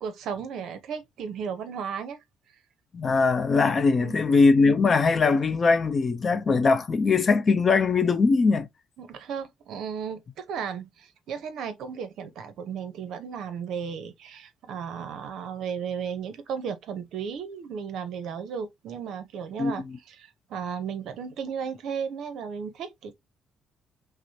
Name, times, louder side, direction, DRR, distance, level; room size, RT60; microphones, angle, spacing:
voice 1, 0.0-2.2 3.9-4.4 9.0-23.1, right 7 dB, 70° right, 0.8 m, -35 dB
voice 2, 2.9-8.7 19.6-19.7, left 4 dB, 35° left, 0.6 m, -21 dB
5.8 x 2.1 x 2.7 m
cardioid pair, 125°, 0 cm